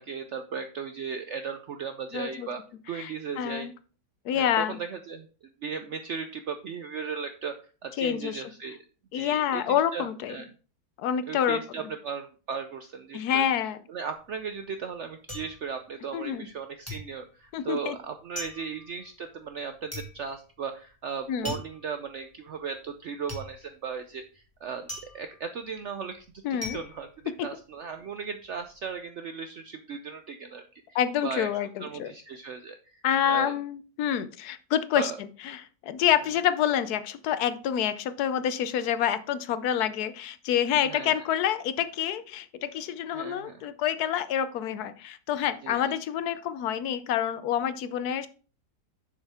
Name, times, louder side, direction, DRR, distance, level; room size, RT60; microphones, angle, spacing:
voice 1, 0.0-2.6 2.9-3.7 4.3-7.5 7.8-8.8 9.1-10.5 11.3-13.5 13.9-27.1 27.4-33.5 34.9-35.2 40.9-41.1 43.1-43.6 45.6-45.9, right 6 dB, 70° right, 8 dB, 0.7 m, -37 dB
voice 2, 2.1-2.5 2.9-3.1 3.4-3.7 4.2-4.8 8.0-8.4 9.1-10.4 11.0-11.6 13.1-13.8 16.1-16.5 17.5-18.0 21.3-21.6 26.4-26.8 27.4-27.5 30.9-32.1 33.0-35.1 35.4-48.3, left 9 dB, 75° left, 14 dB, 1.1 m, -27 dB
sound 1, 14.2-16.6 16.9-28.0 28.3-28.9, left 1 dB, 10° left, 1.8 m, -42 dB
7.3 x 6.6 x 3.4 m, 0.38 s
omnidirectional pair, 1.8 m